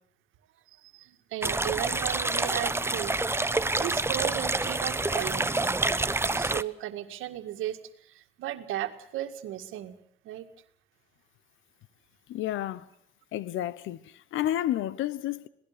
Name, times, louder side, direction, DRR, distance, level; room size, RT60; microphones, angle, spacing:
voice 1, 0.7-3.2 3.5-5.5 6.0-10.0 10.2-10.5, right 13 dB, 90° right, 2.0 m, -35 dB
sound 1, 1.4-6.6, right 2 dB, 10° right, 0.9 m, -27 dB
voice 2, 12.3-12.9 13.3-15.5, left 13 dB, 85° left, 1.0 m, -31 dB
26.5 x 18.5 x 6.8 m
cardioid pair, 90°, 20 cm